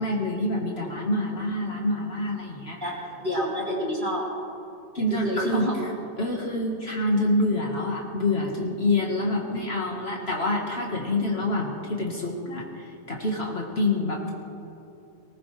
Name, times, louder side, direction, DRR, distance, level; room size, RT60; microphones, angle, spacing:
voice 1, 0.0-2.8 4.9-5.6 6.2-14.3, left 1 dB, 50° left, -1 dB, 1.9 m, -27 dB
voice 2, 2.8-4.2 5.2-5.8 9.6-10.3, equal, 35° right, -5 dB, 3.5 m, -29 dB
19.5 x 18.5 x 3.4 m, 2.9 s
omnidirectional pair, 1.4 m